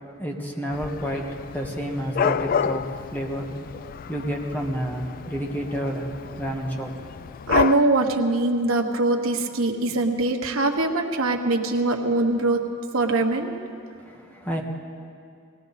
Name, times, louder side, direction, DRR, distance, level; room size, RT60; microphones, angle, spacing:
voice 1, 0.0-3.5 4.1-6.1 6.4-6.9 14.0-14.6, equal, 10° left, 0 dB, 1.5 m, -30 dB
Dog / Cat, 0.7-7.8, left 7 dB, 45° left, 0.3 m, -30 dB
voice 2, 7.5-12.6 12.9-13.5, right 2 dB, 75° right, 3 dB, 1.3 m, -22 dB
19.5 x 18.0 x 4.1 m, 2.3 s
head